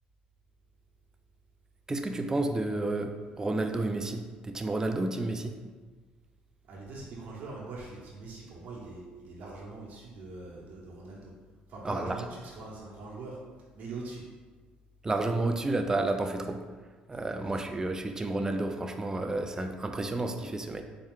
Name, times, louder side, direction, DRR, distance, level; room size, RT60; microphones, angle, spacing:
voice 1, 1.9-5.6 11.8-12.2 15.0-16.6 17.1-20.8, right 2 dB, 20° right, 6 dB, 0.4 m, -31 dB
voice 2, 6.6-11.3 11.7-13.4 13.7-14.2 17.4-17.8, right 3 dB, 60° right, -4 dB, 1.0 m, -42 dB
4.2 x 2.3 x 3.6 m, 1.4 s
supercardioid pair, 85°, 3 cm